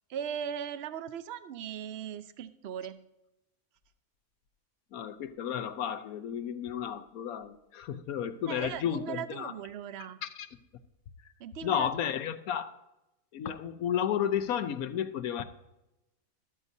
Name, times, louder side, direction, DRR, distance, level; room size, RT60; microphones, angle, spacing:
voice 1, 0.1-3.0 8.5-10.2 11.4-12.1, right 9 dB, 55° right, 13 dB, 0.8 m, -38 dB
voice 2, 4.9-9.5 10.2-10.5 11.6-12.7 13.3-15.4, left 9 dB, 80° left, 10 dB, 1.2 m, -32 dB
13.5 x 13.0 x 2.7 m, 0.94 s
omnidirectional pair, 1.5 m